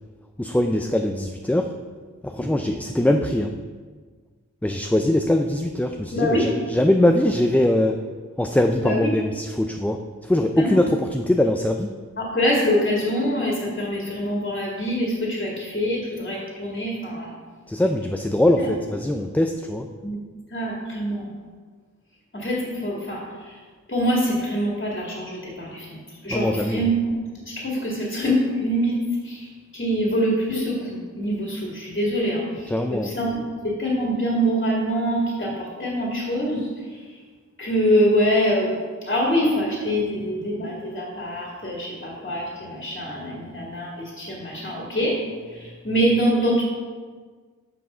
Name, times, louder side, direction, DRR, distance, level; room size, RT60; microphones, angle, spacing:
voice 1, 0.4-1.7 2.2-3.6 4.6-8.1 8.4-12.0 17.7-19.9 26.3-26.9 32.7-33.1, left 1 dB, 5° left, 4 dB, 0.3 m, -22 dB
voice 2, 6.1-6.5 8.8-9.1 10.6-10.8 12.2-17.3 18.6-18.7 20.0-20.2 20.5-21.3 22.3-23.6 23.9-27.2 27.4-28.9 29.2-37.2 37.6-45.2 45.5-46.6, equal, 35° left, -4 dB, 2.0 m, -25 dB
6.9 x 6.2 x 5.5 m, 1.5 s
wide cardioid pair, 90°, 31 cm